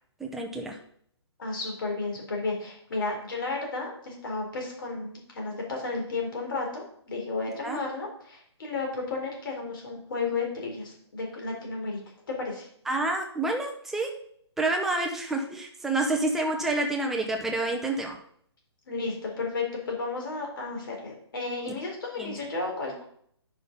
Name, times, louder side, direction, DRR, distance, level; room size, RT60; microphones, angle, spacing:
voice 1, 0.2-0.8 7.6-7.8 12.9-14.1 14.6-18.2 22.2-22.3, right 2 dB, ahead, 2 dB, 0.5 m, -28 dB
voice 2, 1.4-12.0 12.3-12.7 18.9-23.0, left 3 dB, 50° left, 0 dB, 4.0 m, -33 dB
9.4 x 5.7 x 5.3 m, 0.65 s
hypercardioid pair, 165°, 15 cm